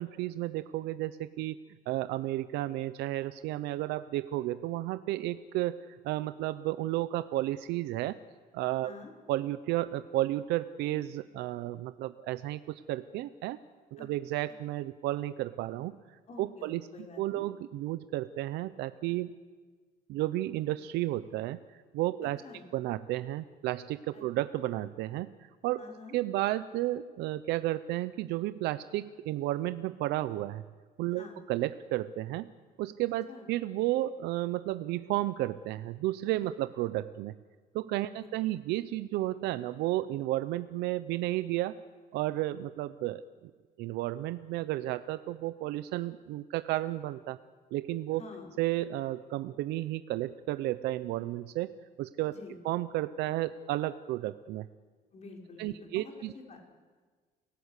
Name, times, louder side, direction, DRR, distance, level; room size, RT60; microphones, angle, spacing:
voice 1, 0.0-1.6 1.9-8.2 8.5-8.9 9.3-13.6 13.9-16.8 17.2-19.3 20.1-22.4 22.7-25.8 26.1-30.6 31.0-32.5 32.8-37.3 37.7-41.8 42.1-43.2 43.8-47.4 47.7-48.2 48.6-52.3 52.6-54.7 55.6-56.3, right 15 dB, 85° right, 13 dB, 0.7 m, -32 dB
voice 2, 16.3-17.4 22.4-22.6 24.1-24.2 25.8-26.2 31.1-31.4 33.3-33.5 48.2-48.5 52.3-52.6 55.1-56.6, left 3 dB, 40° left, 1 dB, 5.8 m, -48 dB
29.5 x 17.5 x 8.3 m, 1.5 s
cardioid pair, 110°, 17 cm